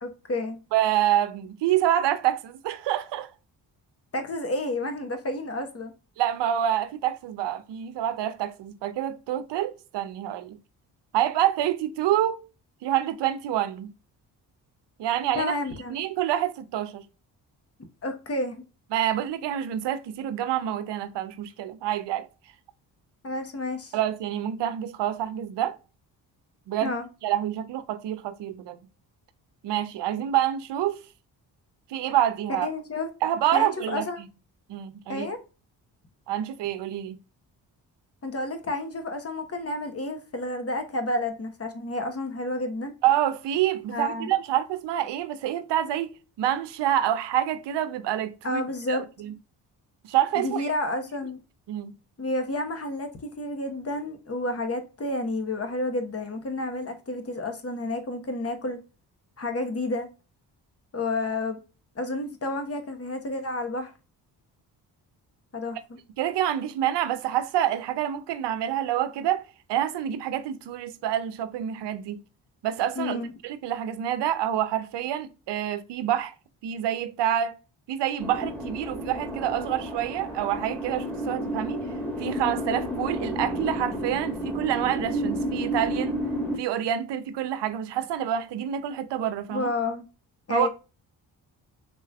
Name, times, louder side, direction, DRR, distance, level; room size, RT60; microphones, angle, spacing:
voice 1, 0.0-0.6 4.1-5.9 15.3-16.0 18.0-18.6 23.2-24.0 26.8-27.1 32.6-33.1 33.5-34.2 35.1-35.4 38.2-42.9 43.9-44.3 48.4-49.0 50.4-51.4 52.2-58.8 59.4-60.1 60.9-61.6 61.9-63.9 65.5-66.0 73.0-73.3 89.5-90.0 90.5-90.7, left 2 dB, 35° left, 1.1 m, -30 dB
voice 2, 0.7-3.3 6.2-10.6 11.1-12.4 12.8-13.9 15.0-15.6 15.9-17.0 18.9-22.3 23.9-25.8 26.7-28.8 29.6-31.0 31.9-32.7 33.2-34.0 34.7-35.3 36.3-37.2 43.0-48.6 48.9-49.3 50.0-50.7 51.7-51.9 66.2-72.2 72.6-76.3 76.6-77.5 77.9-81.8 82.2-86.1 86.6-89.7 90.5-90.7, right 11 dB, 70° right, 0.7 m, -27 dB
sound 1, 78.2-86.6, equal, 5° left, 1.6 m, -31 dB
4.0 x 3.2 x 2.3 m
supercardioid pair, 50°, 44 cm